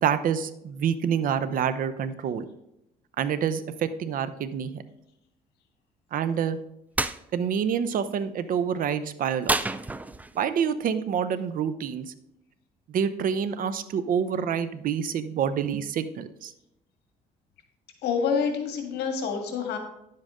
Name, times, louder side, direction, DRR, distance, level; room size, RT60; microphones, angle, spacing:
voice 1, 0.0-2.4 3.2-4.8 6.1-6.6 7.3-9.6 10.4-12.1 12.9-16.5, right 8 dB, 55° right, 12 dB, 0.8 m, -27 dB
sound 1, 7.0-7.2 9.5-10.4, right 2 dB, 10° right, 0.4 m, -28 dB
voice 2, 18.0-19.8, left 6 dB, 75° left, 4 dB, 1.7 m, -27 dB
10.5 x 7.6 x 3.7 m, 0.82 s
cardioid pair, 110°, 17 cm